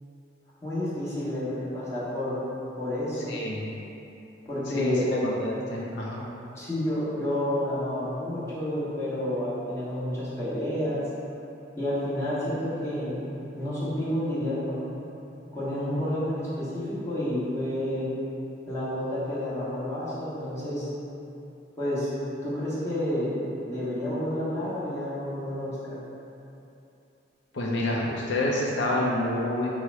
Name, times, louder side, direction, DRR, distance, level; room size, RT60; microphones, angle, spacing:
voice 1, 0.6-2.4 2.8-3.3 4.5-5.1 6.5-11.0 11.8-15.0 15.5-18.1 18.7-20.9 21.8-22.1 22.4-23.4 23.6-26.0, left 1 dB, 15° left, -11 dB, 1.1 m, -30 dB
voice 2, 3.3-3.7 4.7-6.2 27.5-29.7, left 1 dB, 70° left, -4 dB, 0.5 m, -28 dB
4.7 x 2.1 x 4.5 m, 2.8 s
head